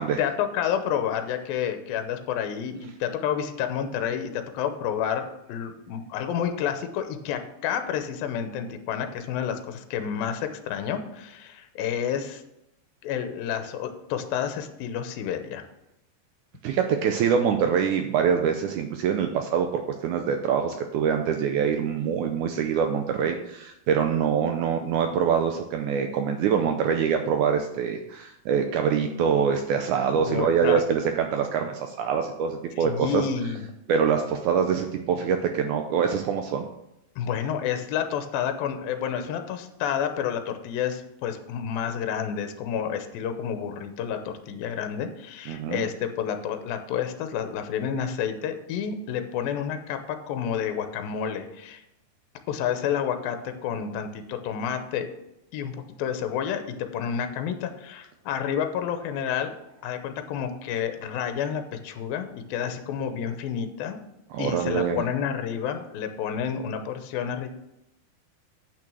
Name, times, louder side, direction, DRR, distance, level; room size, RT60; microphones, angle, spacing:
voice 1, 0.2-12.4 13.0-15.6 30.2-30.8 32.8-33.6 37.2-51.8 52.5-55.1 55.5-55.7 56.0-59.5 59.8-64.0 64.4-67.5, left 8 dB, 85° left, 7 dB, 2.5 m, -30 dB
voice 2, 16.6-33.3 33.9-36.7 45.5-45.8 64.3-65.0, right 7 dB, 80° right, 5 dB, 1.8 m, -24 dB
8.7 x 6.1 x 6.2 m, 0.84 s
omnidirectional pair, 4.1 m